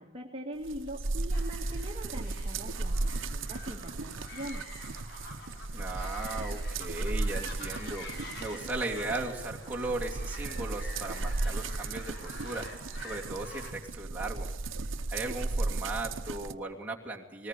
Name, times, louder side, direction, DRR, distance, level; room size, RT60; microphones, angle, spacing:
voice 1, 0.0-4.7, right 1 dB, 30° right, -1 dB, 1.8 m, -42 dB
sound 1, 0.6-16.5, right 2 dB, 85° right, 0.9 m, -35 dB
sound 2, 1.3-13.7, left 2 dB, 60° left, 3.8 m, -47 dB
voice 2, 5.7-14.5 15.1-17.5, right 2 dB, 10° right, -3 dB, 2.8 m, -37 dB
19.5 x 19.5 x 8.4 m, 0.98 s
head